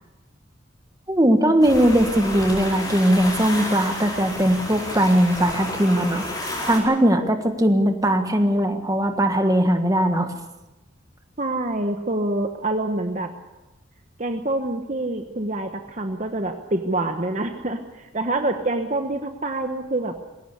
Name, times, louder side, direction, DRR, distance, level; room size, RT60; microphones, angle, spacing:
voice 1, 1.1-6.3 6.7-10.3, right 1 dB, 15° right, 6 dB, 1.5 m, -19 dB
sound 1, 1.6-6.8, left 1 dB, 20° left, 5.0 m, -31 dB
voice 2, 11.4-13.3 14.2-20.2, right 2 dB, 35° right, 5 dB, 1.2 m, -26 dB
21.0 x 17.5 x 8.3 m, 1.0 s
head